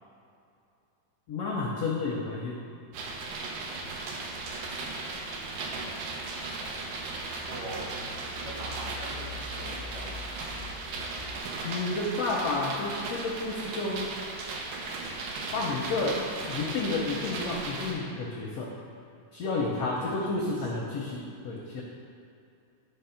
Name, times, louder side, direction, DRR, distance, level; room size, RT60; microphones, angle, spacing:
voice 1, 1.3-2.7 11.6-14.1 15.5-18.7 19.3-21.8, left 3 dB, 80° left, -2 dB, 1.4 m, -31 dB
sound 1, 2.9-17.9, right 3 dB, 90° right, 2.6 m, -37 dB
sound 2, 4.4-11.4, left 3 dB, 10° left, 0.3 m, -46 dB
voice 2, 7.5-7.9 8.4-10.2 19.7-20.9, right 1 dB, 75° right, -4 dB, 3.3 m, -43 dB
10.5 x 3.7 x 5.6 m, 2.6 s
omnidirectional pair, 3.8 m